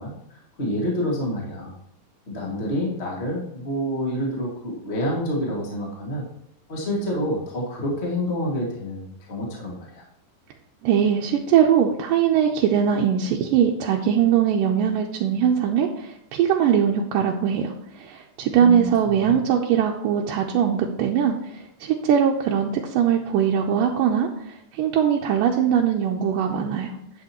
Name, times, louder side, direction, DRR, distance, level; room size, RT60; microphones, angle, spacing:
voice 1, 0.0-1.7 2.3-6.2 6.7-10.0 18.5-19.4, equal, 25° left, -2 dB, 1.6 m, -28 dB
voice 2, 10.8-26.9, right 8 dB, 80° right, 0 dB, 2.2 m, -21 dB
10.5 x 7.9 x 3.0 m, 0.75 s
omnidirectional pair, 4.2 m